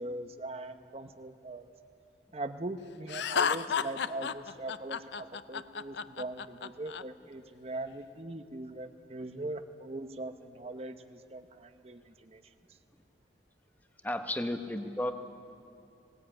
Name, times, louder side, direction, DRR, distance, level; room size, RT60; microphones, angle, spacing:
voice 1, 0.0-1.7 2.3-12.4, right 2 dB, 35° right, 9 dB, 0.8 m, -41 dB
Laughter, 3.1-7.0, left 6 dB, 70° left, 0.5 m, -32 dB
voice 2, 14.0-15.1, left 1 dB, 10° left, 7 dB, 0.9 m, -33 dB
19.5 x 18.5 x 8.8 m, 2.7 s
head